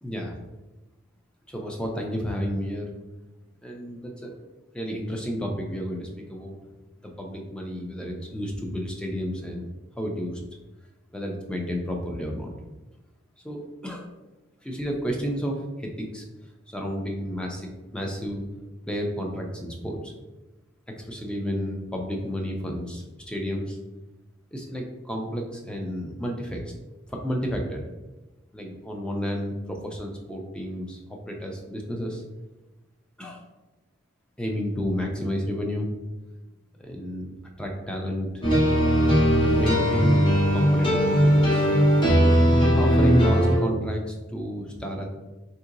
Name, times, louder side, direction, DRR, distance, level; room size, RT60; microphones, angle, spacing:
voice 1, 0.0-0.3 1.5-2.9 3.6-4.3 4.7-6.6 7.0-9.7 10.0-10.4 11.1-12.5 13.4-14.1 14.6-16.2 16.7-18.4 18.9-20.1 20.9-23.8 24.5-26.7 27.1-27.8 28.5-31.0 31.3-32.2 33.2-33.4 34.4-35.9 36.8-37.3 37.6-38.3 39.4-40.3 40.5-41.7 42.6-45.1, equal, 5° left, 1 dB, 0.4 m, -31 dB
sound 1, 38.4-43.6, equal, 25° left, 1.0 m, -19 dB
3.7 x 2.8 x 2.5 m, 1.1 s
head